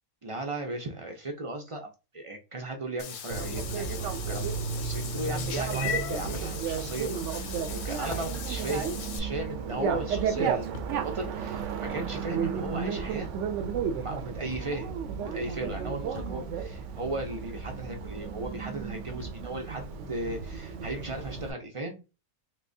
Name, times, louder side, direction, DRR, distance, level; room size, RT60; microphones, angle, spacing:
voice 1, 0.2-13.3 13.9-14.9 15.3-22.0, right 2 dB, 40° right, 0.5 m, -36 dB
Meow / Water / Bathtub (filling or washing), 3.0-9.2, left 8 dB, 65° left, 0.8 m, -38 dB
Bicycle, 3.3-21.5, right 6 dB, 75° right, 0.9 m, -33 dB
sound 1, 6.3-6.5 7.1-7.2 7.9-9.8 10.7-11.1 12.3-12.4 13.7-13.8 14.5-14.8 16.1-16.4 18.0-18.1 19.2-19.5 20.3-20.4, left 4 dB, 85° left, 0.4 m, -46 dB
3.5 x 3.0 x 2.6 m
omnidirectional pair, 1.3 m